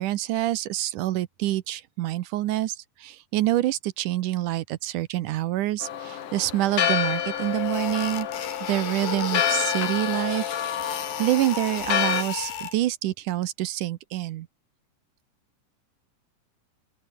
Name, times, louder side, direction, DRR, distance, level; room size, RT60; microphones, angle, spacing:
voice 1, 0.0-8.3 8.7-10.4 10.8-14.5, right 15 dB, 70° right, 2.2 m, -27 dB
Church bell, 5.8-12.2, left 9 dB, 65° left, 3.4 m, -28 dB
sound 1, 6.9-7.0 7.4-12.7, left 8 dB, 85° left, 4.8 m, -33 dB
open air
omnidirectional pair, 4.0 m